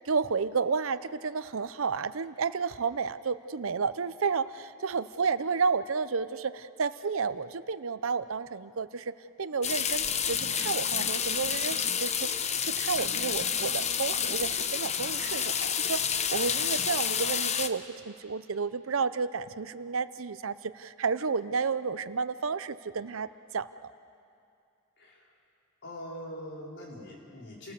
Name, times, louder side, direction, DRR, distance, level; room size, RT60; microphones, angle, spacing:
voice 1, 0.1-9.1 9.4-23.3 23.5-23.9, right 5 dB, 75° right, 14 dB, 0.7 m, -31 dB
sound 1, 9.6-17.7, left 7 dB, 35° left, 0.8 m, -29 dB
voice 2, 25.8-27.7, equal, 60° left, -3 dB, 5.0 m, -42 dB
30.0 x 19.0 x 7.0 m, 2.4 s
head